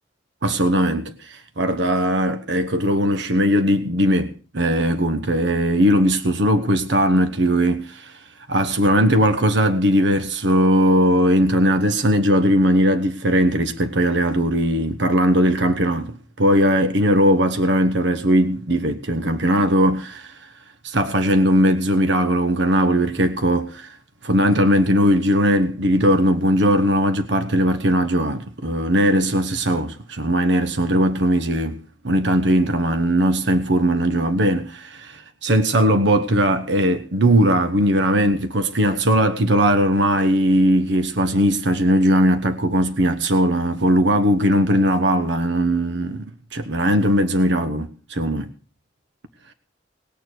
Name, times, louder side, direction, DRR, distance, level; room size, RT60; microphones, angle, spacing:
voice 1, 0.4-20.5 20.8-24.0 24.2-31.8 32.0-48.5, equal, 70° right, 1.1 m, -19 dB
19.5 x 6.8 x 8.1 m
head